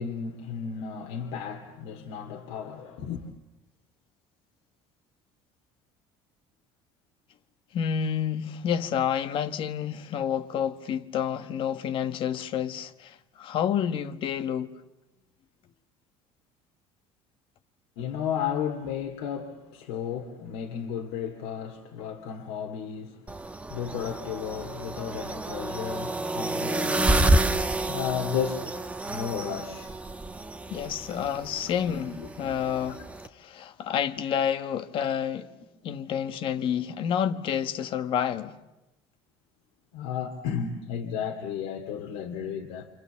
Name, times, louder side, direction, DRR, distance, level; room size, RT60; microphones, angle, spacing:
voice 1, 0.0-3.3 18.0-29.9 31.3-31.4 39.9-42.9, left 8 dB, 90° left, 2.4 m, -34 dB
voice 2, 7.7-14.8 30.7-33.0 33.3-35.5 35.8-38.6, left 8 dB, 55° left, 1.5 m, -29 dB
sound 1, 23.3-33.3, right 2 dB, 10° right, 1.1 m, -29 dB
28.5 x 27.5 x 7.2 m
cardioid pair, 120°, 11 cm